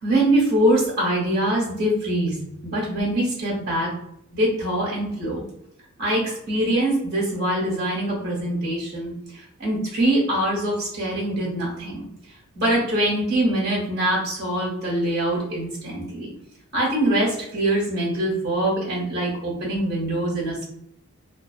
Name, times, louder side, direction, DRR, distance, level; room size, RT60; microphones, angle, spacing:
voice 1, 0.0-2.4 2.6-3.9 4.3-5.4 6.0-12.0 12.5-16.3 16.7-20.6, right 1 dB, 45° right, -4 dB, 1.0 m, -23 dB
2.3 x 2.2 x 2.3 m, 0.74 s
head